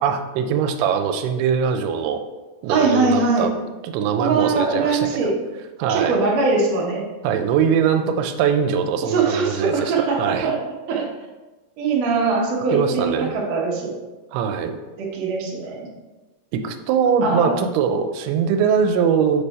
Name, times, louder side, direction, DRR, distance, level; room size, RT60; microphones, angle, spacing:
voice 1, 0.0-2.2 2.6-3.5 3.8-5.2 5.8-6.2 7.2-10.5 12.7-13.3 14.3-14.8 16.5-19.4, right 7 dB, 90° right, 7 dB, 2.5 m, -21 dB
voice 2, 2.7-3.5 4.2-5.4 5.9-7.1 9.0-10.6 10.9-11.1 11.8-13.9 15.0-15.9 17.2-17.6, right 4 dB, 65° right, -3 dB, 1.7 m, -21 dB
6.8 x 3.4 x 4.1 m, 1.2 s
omnidirectional pair, 4.4 m